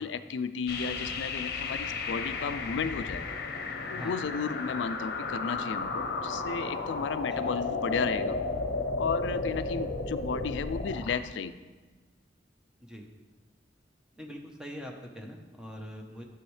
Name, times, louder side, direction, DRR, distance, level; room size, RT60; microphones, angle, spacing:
voice 1, 0.0-3.2 3.9-8.4 9.0-11.5, left 6 dB, 90° left, 12 dB, 0.4 m, -33 dB
sound 1, 0.7-11.2, left 3 dB, 60° left, 0.8 m, -33 dB
voice 2, 14.2-16.2, equal, 5° right, 1 dB, 0.8 m, -43 dB
10.0 x 6.2 x 3.2 m, 1.4 s
head